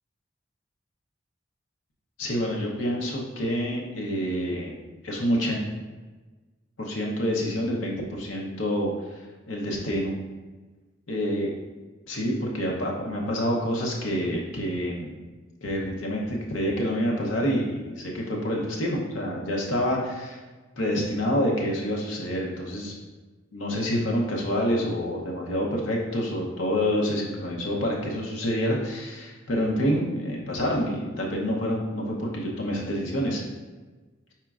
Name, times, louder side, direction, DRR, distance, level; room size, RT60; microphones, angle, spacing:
voice 1, 2.2-4.7 5.0-5.6 6.8-9.2 9.5-10.2 11.1-11.5 12.1-15.1 15.6-20.4 20.8-22.9 23.5-33.4, equal, 80° left, -2 dB, 0.7 m, -27 dB
5.0 x 4.3 x 2.4 m, 1.3 s
head